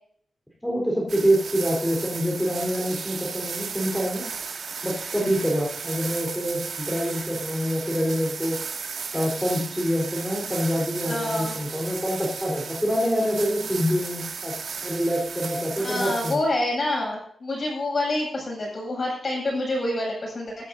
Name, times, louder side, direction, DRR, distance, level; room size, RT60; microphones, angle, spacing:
voice 1, 0.6-4.3 4.8-8.6 9.1-14.5 14.8-16.4, equal, 5° left, -3 dB, 4.3 m, -26 dB
sound 1, 1.1-16.4, right 5 dB, 65° right, 2.3 m, -35 dB
voice 2, 11.1-11.6 15.8-20.7, left 1 dB, 40° left, -2 dB, 7.7 m, -27 dB
22.5 x 12.5 x 2.8 m, 0.67 s
wide cardioid pair, 135°, 0 cm